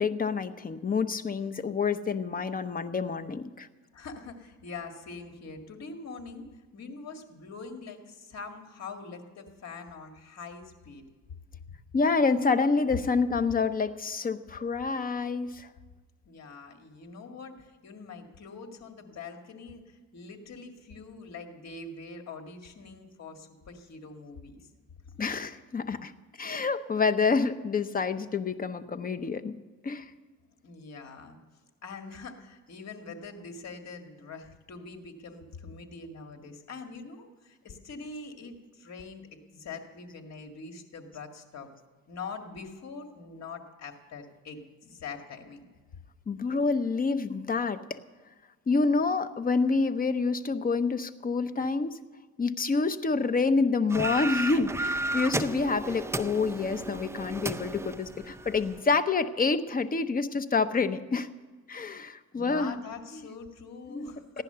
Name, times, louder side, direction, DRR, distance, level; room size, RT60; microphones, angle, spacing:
voice 1, 0.0-3.7 11.9-15.7 25.2-26.1 26.4-29.5 29.8-30.1 46.3-47.8 48.7-52.0 52.4-61.3 61.7-62.8 63.1-63.2 63.9-64.1 64.3-64.4, left 4 dB, 30° left, 10 dB, 0.8 m, -27 dB
voice 2, 3.9-6.5 6.7-11.0 16.3-24.6 30.6-31.4 31.8-39.2 39.5-41.7 42.1-45.6 62.3-64.4, left 4 dB, 60° left, 5 dB, 2.0 m, -43 dB
sound 1, 53.9-58.8, right 2 dB, 10° right, 0.5 m, -33 dB
15.5 x 10.5 x 6.8 m, 1.4 s
cardioid pair, 90°, 30 cm